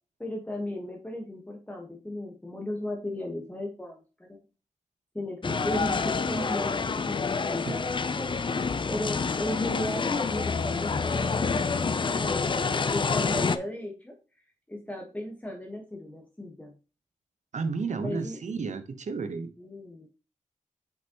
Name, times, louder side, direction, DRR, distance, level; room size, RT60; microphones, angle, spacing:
voice 1, 0.2-4.0 4.3-4.4 5.1-7.2 7.5-8.4 8.9-14.1 14.7-16.7 18.0-18.4 19.6-20.1, left 1 dB, 10° left, 1.4 m, -35 dB
sound 1, 5.4-13.6, left 4 dB, 40° left, 0.5 m, -28 dB
voice 2, 17.5-19.5, right 4 dB, 65° right, 1.0 m, -32 dB
6.1 x 5.5 x 3.0 m
cardioid pair, 80°, 13 cm